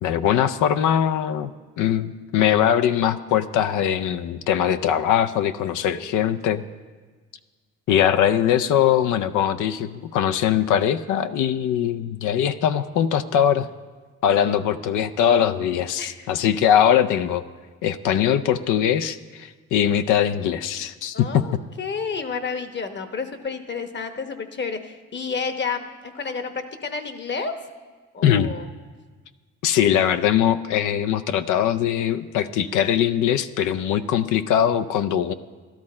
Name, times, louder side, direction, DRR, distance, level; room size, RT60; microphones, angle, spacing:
voice 1, 0.0-1.5 1.8-6.6 7.9-13.7 14.2-17.4 17.8-21.6 28.2-28.5 29.6-35.3, left 9 dB, 80° left, 11 dB, 0.5 m, -21 dB
voice 2, 5.9-6.2 14.4-14.7 16.0-16.3 21.1-27.5 28.1-28.7, left 5 dB, 35° left, 8 dB, 1.0 m, -31 dB
12.5 x 12.0 x 4.3 m, 1.4 s
cardioid pair, 90°, 30 cm